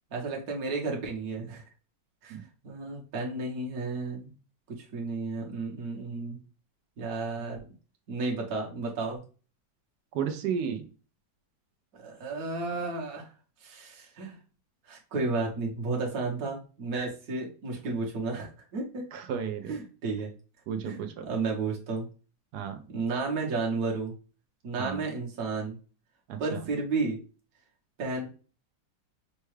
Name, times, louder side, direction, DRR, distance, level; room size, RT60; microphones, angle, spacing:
voice 1, 0.1-1.6 2.2-2.4 2.6-4.3 4.7-6.4 7.0-7.7 8.1-9.2 11.9-13.3 13.6-14.4 14.9-19.0 19.7-20.3 20.8-22.1 22.9-24.1 24.6-25.8 26.4-27.2 28.0-28.3, right 3 dB, 55° right, -1 dB, 1.3 m, -32 dB
voice 2, 10.1-10.9 19.1-19.8 20.7-21.3 22.5-22.8 24.8-25.0 26.3-26.6, right 7 dB, 70° right, 7 dB, 1.0 m, -33 dB
5.4 x 2.3 x 3.2 m, 0.36 s
omnidirectional pair, 2.0 m